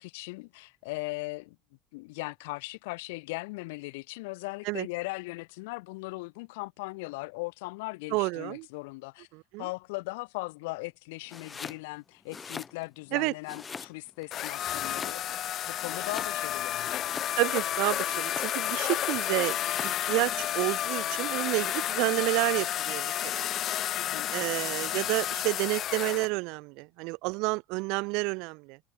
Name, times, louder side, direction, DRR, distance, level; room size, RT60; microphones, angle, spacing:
voice 1, 0.0-1.6 1.9-9.3 9.6-15.4 15.7-17.0 24.0-24.3, left 25 dB, 80° left, 4.9 m, -38 dB
voice 2, 8.1-8.7 9.3-9.7 13.1-13.3 17.4-19.6 19.8-23.5 24.3-28.8, right 27 dB, 70° right, 1.4 m, -30 dB
Domestic sounds home sounds, 11.3-11.8 12.2-13.1 13.5-14.2 14.7-15.5 15.8-17.6 18.1-18.8 19.4-20.1, left 5 dB, 25° left, 2.2 m, -42 dB
sound 1, 14.3-26.3, left 11 dB, 50° left, 1.4 m, -31 dB
supercardioid pair, 95°, 0 cm